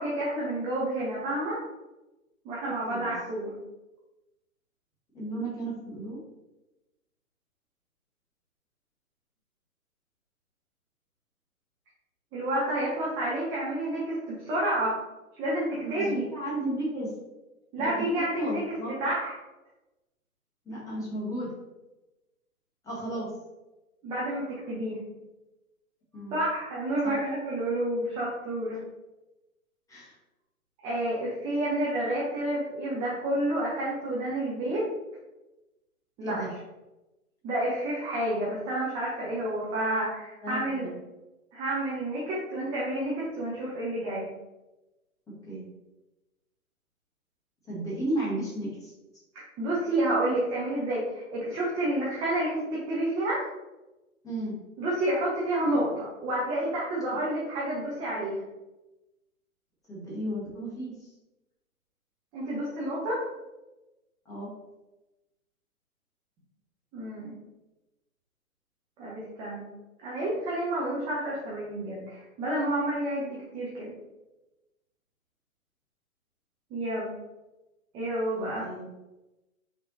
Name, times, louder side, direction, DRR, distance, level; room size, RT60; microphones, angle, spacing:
voice 1, 0.0-1.6 2.4-3.5 12.3-14.2 14.5-15.0 15.4-16.2 17.7-18.6 19.0-19.3 24.0-25.0 26.3-28.8 30.8-34.8 36.2-36.5 37.4-40.9 41.5-44.2 49.6-53.4 54.8-58.4 62.3-63.2 66.9-67.3 69.0-69.6 70.0-73.9 76.7-77.1 77.9-78.7, right 1 dB, 10° right, -7 dB, 0.6 m, -29 dB
voice 2, 5.1-6.2 15.8-17.1 17.7-17.9 18.2-18.9 20.6-21.5 22.8-23.3 26.1-26.4 27.0-27.1 29.9-30.1 36.2-36.5 40.4-40.9 45.3-45.7 47.7-48.9 54.2-54.6 59.9-60.9 64.2-64.5 78.3-78.9, right 1 dB, 10° left, -7 dB, 1.4 m, -34 dB
5.5 x 3.4 x 2.7 m, 1.0 s
figure-of-eight pair, 125°, 43 cm